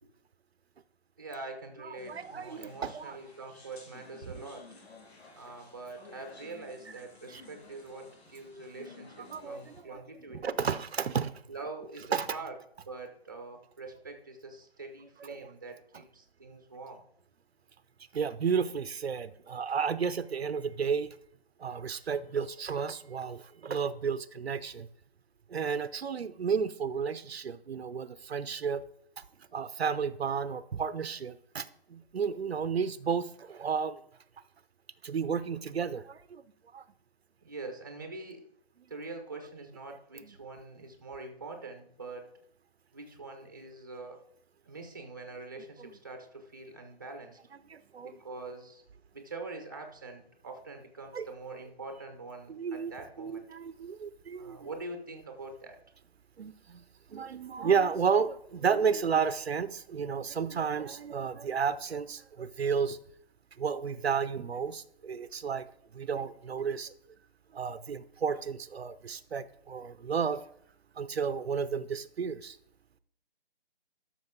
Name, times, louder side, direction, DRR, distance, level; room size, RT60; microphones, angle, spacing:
voice 1, 1.2-4.7 5.3-10.5 11.5-12.5 12.9-17.0 37.4-38.4 38.9-42.3 42.9-44.2 44.6-47.4 48.0-48.8 49.1-53.4 54.4-55.8, right 3 dB, 20° right, 5 dB, 0.8 m, -44 dB
voice 2, 1.8-3.2 4.2-4.3 7.3-7.4 9.2-10.0 10.3-11.4 12.1-12.4 15.3-15.5 18.1-21.2 21.6-24.9 25.5-28.8 29.2-29.3 29.5-34.0 35.0-36.4 36.7-36.8 39.9-40.3 45.8-45.9 47.7-48.1 51.1-51.3 52.5-52.9 53.2-54.7 56.4-63.0 63.6-65.7 65.9-66.9 67.5-70.4 71.0-72.6, right 6 dB, 80° right, 14 dB, 0.7 m, -32 dB
sound 1, 2.0-9.8, left 4 dB, 85° left, 2.3 m, -54 dB
12.0 x 6.3 x 3.7 m, 0.67 s
hypercardioid pair, 180°, 31 cm